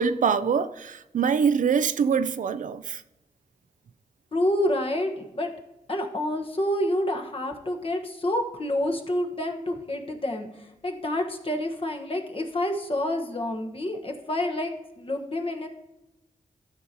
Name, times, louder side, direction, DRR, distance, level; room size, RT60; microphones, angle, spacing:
voice 1, 0.0-3.0, right 6 dB, 75° right, 0.4 m, -24 dB
voice 2, 4.3-5.5 5.9-15.7, left 1 dB, 45° left, 1.3 m, -28 dB
13.0 x 5.3 x 2.9 m
wide cardioid pair, 70°, 13 cm